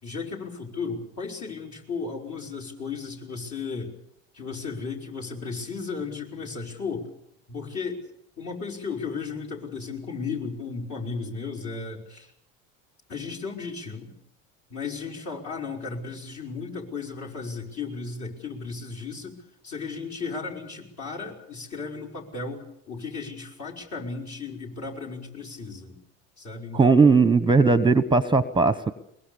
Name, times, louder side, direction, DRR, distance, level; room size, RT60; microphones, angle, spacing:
voice 1, 0.0-3.9 4.3-7.1 7.5-8.1 8.4-12.3 13.1-14.1 14.7-26.0 26.4-27.1, left 4 dB, 45° left, 0 dB, 5.5 m, -35 dB
voice 2, 26.7-28.9, right 4 dB, 10° right, 14 dB, 1.0 m, -18 dB
22.5 x 21.0 x 7.0 m, 0.79 s
hypercardioid pair, 70°, 39 cm